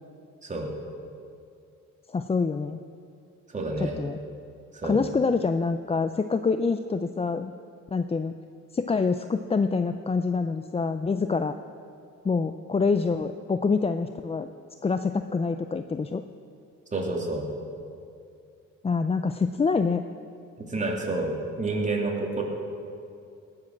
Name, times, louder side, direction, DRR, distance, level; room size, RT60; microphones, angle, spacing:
voice 1, 2.1-2.8 3.8-4.2 4.8-7.5 7.9-8.3 8.7-11.5 12.2-14.5 14.8-16.2 18.8-20.0, left 4 dB, 20° left, 9 dB, 0.5 m, -26 dB
voice 2, 3.5-4.0 4.7-5.0 16.9-17.4 20.6-22.4, right 2 dB, 25° right, -1 dB, 2.9 m, -29 dB
18.5 x 7.6 x 7.3 m, 2.5 s
cardioid pair, 90°, 30 cm